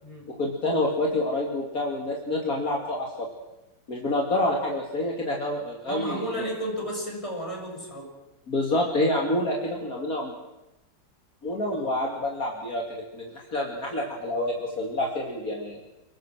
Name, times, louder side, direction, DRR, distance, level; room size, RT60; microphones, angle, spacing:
voice 1, 0.4-3.3 3.9-6.5 8.5-10.3 11.4-15.8, left 1 dB, 55° left, -1 dB, 3.1 m, -28 dB
voice 2, 5.9-8.1 11.7-11.8, equal, 15° left, -1 dB, 7.1 m, -33 dB
29.5 x 20.5 x 6.3 m, 0.97 s
omnidirectional pair, 1.9 m